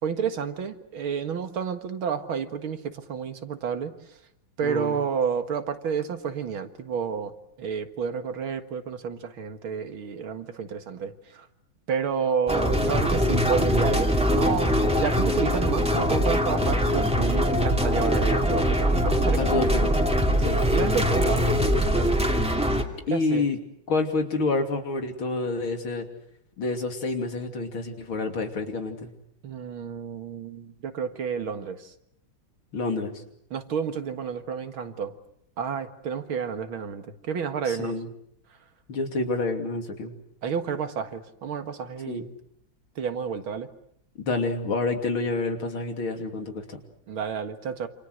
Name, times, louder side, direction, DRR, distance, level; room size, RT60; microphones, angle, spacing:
voice 1, 0.0-3.9 4.6-7.3 7.6-11.5 11.9-19.8 20.4-22.2 23.1-23.4 29.4-31.9 33.5-35.1 35.6-37.9 40.4-42.3 43.0-43.7 47.1-47.9, right 6 dB, 85° right, 8 dB, 2.6 m, -30 dB
voice 2, 4.6-5.0 12.8-13.2 17.3-17.7 19.4-20.0 23.1-23.6 23.9-26.1 26.6-29.1 32.7-33.1 37.7-38.1 38.9-40.1 42.1-42.3 44.3-46.8, left 3 dB, 85° left, 5 dB, 3.8 m, -28 dB
sound 1, 12.5-22.8, equal, 5° right, 2.6 m, -22 dB
28.0 x 27.0 x 6.5 m, 0.73 s
omnidirectional pair, 2.2 m